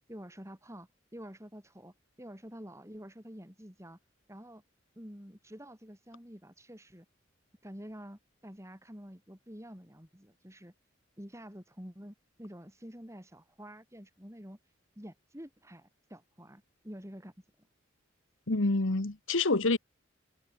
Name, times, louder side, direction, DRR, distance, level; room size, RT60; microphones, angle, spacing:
voice 1, 0.1-4.0 4.3-4.6 5.0-7.1 7.6-10.7 11.2-14.6 15.0-17.3, equal, 15° right, 7.8 m, -48 dB
voice 2, 18.5-19.8, left 2 dB, 90° left, 1.6 m, -27 dB
head